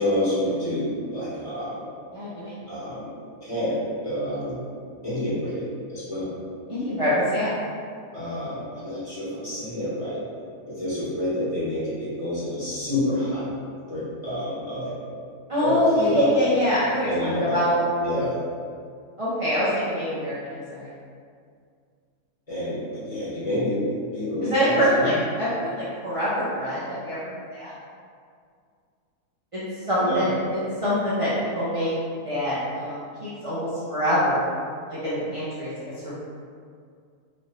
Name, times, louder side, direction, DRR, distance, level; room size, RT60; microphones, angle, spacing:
voice 1, 0.0-1.8 2.7-3.1 3.4-4.6 5.0-6.3 8.1-10.2 10.7-13.5 13.9-15.0 15.6-16.3 17.0-17.6 18.0-18.3 22.5-23.8 24.1-25.1 30.0-30.3, left 1 dB, 25° left, -12 dB, 1.4 m, -28 dB
voice 2, 2.1-2.6 6.7-7.5 15.5-17.8 19.2-20.9 24.4-27.7 29.5-31.9 32.2-34.5 34.9-35.7 36.0-36.2, equal, 30° right, -11 dB, 0.7 m, -25 dB
4.3 x 2.7 x 3.2 m, 2.2 s
omnidirectional pair, 1.6 m